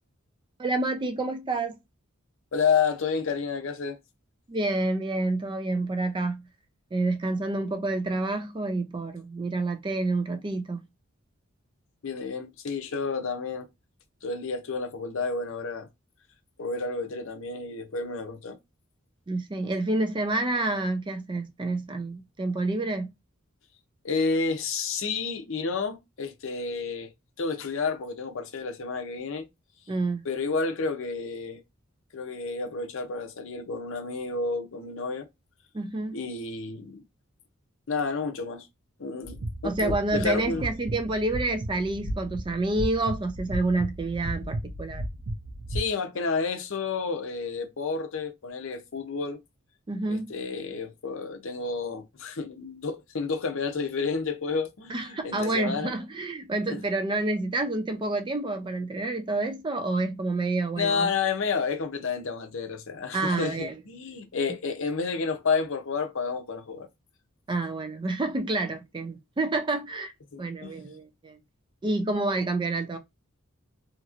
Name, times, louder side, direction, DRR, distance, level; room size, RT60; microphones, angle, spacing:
voice 1, 0.6-1.8 4.5-6.4 6.9-10.8 19.3-23.1 29.9-30.2 35.7-36.2 39.6-45.0 49.9-50.3 54.9-61.1 63.1-63.8 67.5-70.1 70.4-71.4 71.8-73.0, right 2 dB, 25° right, 0.4 m, -28 dB
voice 2, 2.5-4.0 12.0-13.7 14.2-15.9 16.6-18.6 24.0-27.1 27.4-29.4 30.2-31.6 32.1-35.3 36.1-37.0 37.9-38.7 39.0-40.7 45.7-49.4 50.1-55.9 60.8-66.9 70.3-70.8, left 4 dB, 65° left, 0.6 m, -30 dB
sound 1, 39.2-45.8, right 1 dB, 75° right, 1.0 m, -35 dB
2.9 x 2.8 x 2.4 m
head